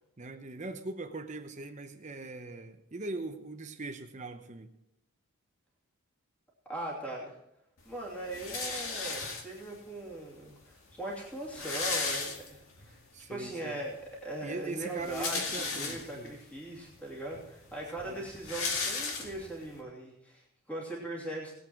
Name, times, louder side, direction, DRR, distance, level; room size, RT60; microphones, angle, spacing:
voice 1, 0.2-4.7 13.1-13.8 14.4-16.4 18.0-18.3, right 2 dB, 35° right, 7 dB, 0.8 m, -41 dB
voice 2, 6.7-7.4 7.8-13.0 13.3-21.5, right 1 dB, 5° left, -4 dB, 2.9 m, -40 dB
sound 1, 8.3-9.8 10.6-10.7 10.9-11.0 11.3-12.9 13.3-13.4 14.8-16.3 17.0-17.1 17.3-19.7, left 4 dB, 70° left, 2.1 m, -35 dB
19.5 x 8.3 x 4.6 m, 0.82 s
head